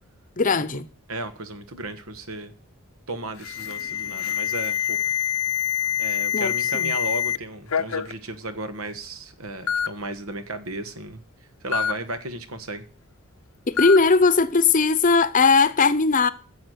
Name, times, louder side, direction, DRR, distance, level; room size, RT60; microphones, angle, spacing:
voice 1, 0.4-0.8 6.3-6.9 13.7-16.3, left 4 dB, 40° left, 0.7 m, -19 dB
voice 2, 1.1-2.5 3.1-5.0 6.0-11.2 11.6-12.9, right 2 dB, 85° right, 1.5 m, -34 dB
Alarm, 3.4-7.4 7.7-8.1 9.0-9.1 9.7-9.9 11.7-11.9 13.8-14.0, left 9 dB, 80° left, 0.7 m, -25 dB
11.5 x 7.3 x 8.0 m
head